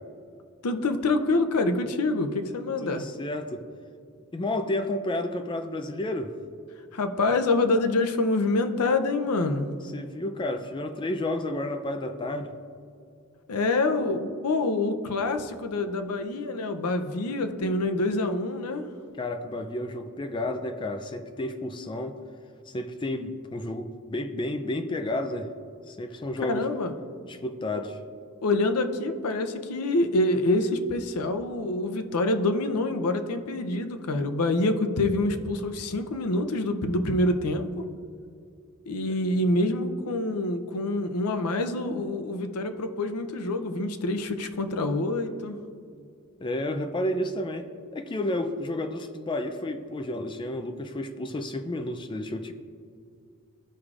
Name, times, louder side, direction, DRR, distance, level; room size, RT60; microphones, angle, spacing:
voice 1, 0.6-3.1 6.9-9.7 13.5-18.9 26.4-26.9 27.7-27.8 28.4-37.9 38.9-45.6, left 2 dB, 90° left, 8 dB, 0.6 m, -26 dB
voice 2, 2.8-3.6 4.3-6.3 9.9-12.5 19.2-22.2 22.7-25.5 25.9-26.7 27.3-28.0 46.4-47.7 47.9-52.5, left 1 dB, 20° left, 7 dB, 0.4 m, -31 dB
14.0 x 4.8 x 2.4 m, 2.4 s
head